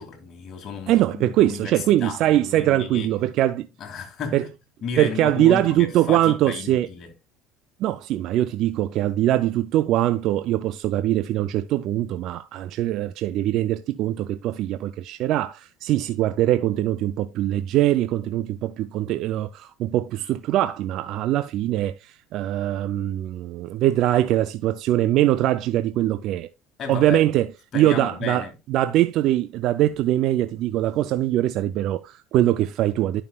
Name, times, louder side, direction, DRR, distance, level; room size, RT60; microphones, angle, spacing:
voice 1, 0.0-3.1 3.8-4.5 4.8-7.1 26.8-27.2 27.7-28.5, left 5 dB, 45° left, 2.3 m, -33 dB
voice 2, 0.9-3.7 4.3-4.5 5.0-6.9 7.8-26.5 26.9-33.2, right 13 dB, 60° right, 0.4 m, -22 dB
11.0 x 5.6 x 2.3 m
supercardioid pair, 105°, 0 cm